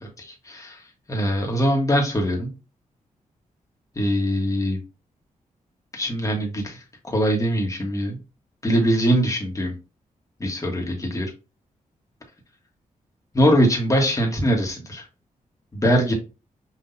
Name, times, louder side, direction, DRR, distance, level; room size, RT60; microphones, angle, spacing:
voice 1, 0.2-0.8 1.1-2.5 3.9-4.8 5.9-8.2 8.6-9.7 10.4-11.3 13.3-15.0 15.7-16.1, equal, 25° left, 1 dB, 1.4 m, -22 dB
5.7 x 2.7 x 2.7 m, 0.29 s
cardioid pair, 80°, 14 cm